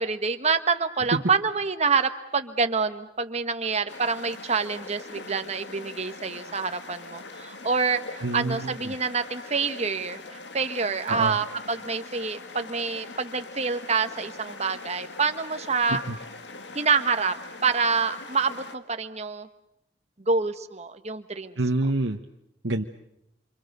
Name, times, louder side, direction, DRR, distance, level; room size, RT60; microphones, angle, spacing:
voice 1, 0.0-10.2 10.5-16.0 16.7-17.3 17.6-19.5 20.3-21.6, right 5 dB, 35° right, 8 dB, 1.5 m, -27 dB
sound 1, 3.9-18.8, left 3 dB, 70° left, 1.9 m, -42 dB
voice 2, 8.2-8.9 11.1-11.4 15.9-16.2 21.6-22.2 22.6-22.8, right 2 dB, 85° right, 2 dB, 1.4 m, -27 dB
27.5 x 27.0 x 6.9 m, 0.80 s
head